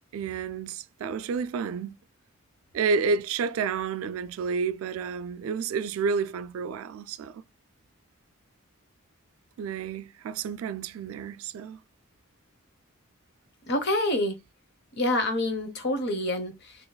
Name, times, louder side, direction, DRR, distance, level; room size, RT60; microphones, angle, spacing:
voice 1, 0.1-1.9 2.7-7.4 9.6-11.8, right 5 dB, 90° right, 0.3 m, -30 dB
voice 2, 13.7-14.4 15.0-16.8, left 1 dB, 55° left, 0.9 m, -27 dB
3.9 x 2.9 x 2.2 m
head